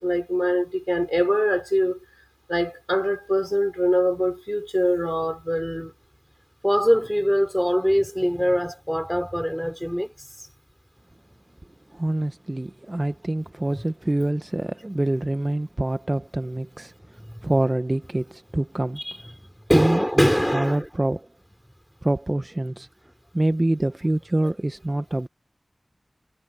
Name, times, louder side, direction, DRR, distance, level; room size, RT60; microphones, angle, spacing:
voice 1, 0.0-2.0 2.5-5.9 6.6-10.1 19.0-19.1 19.7-20.9 24.4-24.5, equal, ahead, 3.6 m, -23 dB
voice 2, 11.9-16.9 17.4-19.0 19.7-21.3 22.0-22.9 23.3-25.3, right 1 dB, 35° right, 0.7 m, -25 dB
wide cardioid pair, 60°, 0 cm